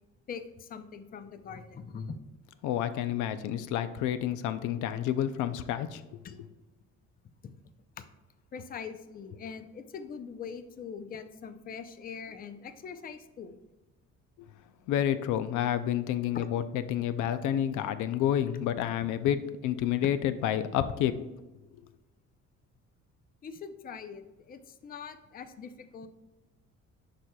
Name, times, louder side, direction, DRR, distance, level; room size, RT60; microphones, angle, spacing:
voice 1, 0.3-2.2 4.8-4.9 6.2-6.4 7.2-7.5 8.0-8.1 8.5-13.6 16.3-16.5 19.0-19.1 23.4-26.1, left 6 dB, 30° left, 10 dB, 0.5 m, -42 dB
voice 2, 2.6-6.2 14.9-16.6 16.9-21.1, left 10 dB, 85° left, 12 dB, 0.5 m, -29 dB
11.0 x 4.3 x 2.3 m, 1.1 s
cardioid pair, 125°, 30 cm